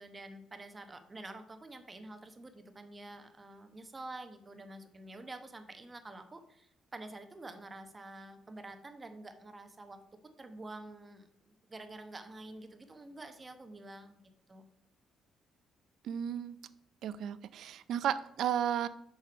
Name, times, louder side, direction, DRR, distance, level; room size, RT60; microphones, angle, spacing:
voice 1, 0.0-10.0 10.4-14.2 14.5-14.6, right 2 dB, 20° right, 7 dB, 1.0 m, -48 dB
voice 2, 16.0-16.6 17.0-18.9, right 9 dB, 70° right, 15 dB, 0.5 m, -33 dB
6.4 x 6.3 x 5.1 m, 0.76 s
cardioid pair, 115°, 0 cm